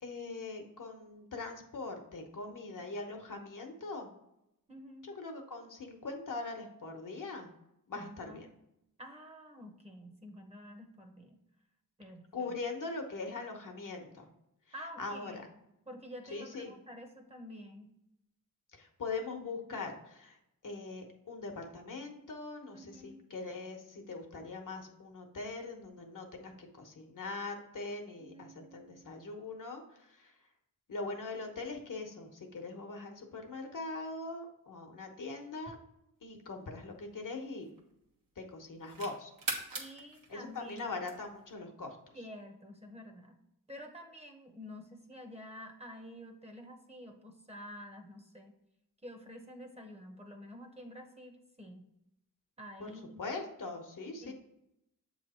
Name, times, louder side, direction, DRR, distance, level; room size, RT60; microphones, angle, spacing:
voice 1, 0.0-4.1 5.0-7.5 7.9-8.5 12.3-14.3 15.0-15.4 16.3-16.7 18.7-20.4 20.6-30.3 30.9-35.8 36.2-37.7 38.4-39.3 40.3-42.0 52.8-52.9 53.2-54.3, left 3 dB, 65° left, 3 dB, 1.1 m, -41 dB
voice 2, 4.7-5.1 7.9-8.4 9.0-11.4 12.0-12.5 14.7-15.4 15.9-17.9 22.7-23.2 28.2-29.3 39.8-41.0 42.1-43.4 43.7-48.6 49.0-51.9 52.6-53.2 54.2-54.3, equal, 20° right, 3 dB, 0.9 m, -49 dB
sound 1, 36.4-38.1 38.6-41.5, right 3 dB, 75° right, 1.2 m, -42 dB
7.2 x 3.2 x 4.2 m, 0.84 s
wide cardioid pair, 105°, 34 cm